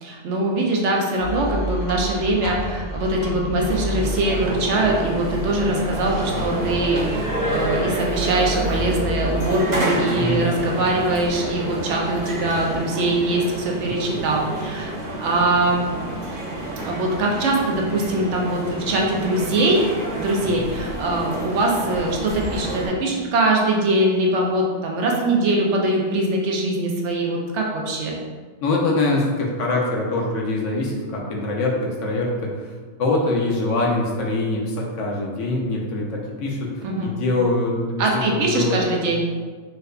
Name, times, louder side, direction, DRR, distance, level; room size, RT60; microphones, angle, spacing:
voice 1, 0.0-14.9 15.2-15.8 16.8-19.8 20.1-28.2 36.8-37.1 38.0-39.2, right 2 dB, 70° right, -1 dB, 0.9 m, -22 dB
sound 1, 1.2-12.8, equal, 55° left, 0.5 m, -31 dB
sound 2, 3.6-22.9, right 1 dB, 45° right, 0.6 m, -29 dB
voice 2, 28.6-32.3 33.0-36.7 37.0-38.8, left 2 dB, 85° left, -1 dB, 1.0 m, -23 dB
4.6 x 2.2 x 2.4 m, 1.5 s
omnidirectional pair, 1.3 m